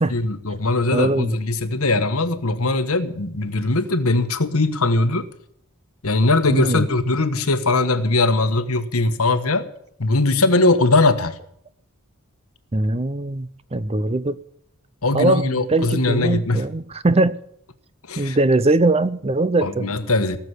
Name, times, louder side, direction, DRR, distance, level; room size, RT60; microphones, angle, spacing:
voice 1, 0.1-5.2 6.0-9.7 10.0-11.4 15.0-16.6 18.1-18.4 19.6-20.4, left 2 dB, 75° left, 1.3 m, -20 dB
voice 2, 0.9-1.3 6.5-6.8 12.7-14.4 15.1-17.4 18.2-19.9, right 2 dB, 25° right, 0.6 m, -21 dB
19.0 x 7.0 x 9.7 m
head